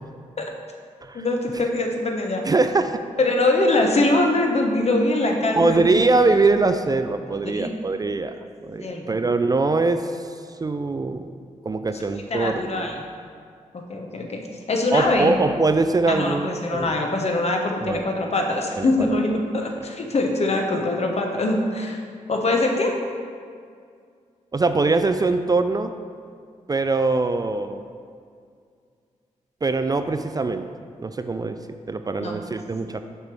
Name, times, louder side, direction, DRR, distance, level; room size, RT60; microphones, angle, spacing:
voice 1, 1.1-2.4 3.2-5.9 7.4-7.7 8.8-9.1 12.3-12.9 13.9-15.3 16.1-22.0 22.3-22.9 32.2-32.4, left 2 dB, 55° left, 2 dB, 1.0 m, -23 dB
voice 2, 2.5-3.0 5.6-8.3 8.6-10.2 10.6-11.3 11.7-12.9 14.9-16.9 17.8-18.0 18.8-19.1 24.5-25.9 26.7-27.9 29.6-30.7 31.0-31.6 31.9-33.0, right 3 dB, 30° right, 8 dB, 0.4 m, -22 dB
6.7 x 3.4 x 6.0 m, 2.2 s
cardioid pair, 50°, 13 cm